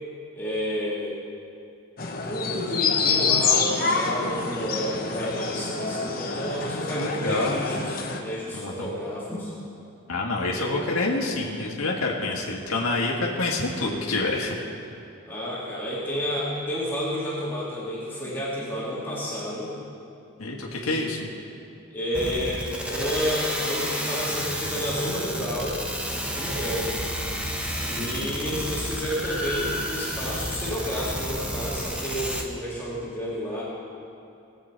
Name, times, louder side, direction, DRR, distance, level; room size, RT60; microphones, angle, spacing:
voice 1, 0.3-1.2 2.2-9.5 10.5-10.7 15.3-19.8 20.8-21.0 21.9-25.8 26.1-27.0 27.8-33.6, equal, 10° left, -7 dB, 1.9 m, -30 dB
sound 1, 2.0-8.2, left 5 dB, 45° left, 1.0 m, -27 dB
voice 2, 7.0-7.6 8.5-8.9 10.1-14.6 20.4-21.3 28.0-28.3, left 2 dB, 85° left, -2 dB, 1.6 m, -27 dB
sound 2, 22.1-32.4, equal, 5° right, 0.9 m, -31 dB
20.0 x 8.1 x 4.5 m, 2.7 s
head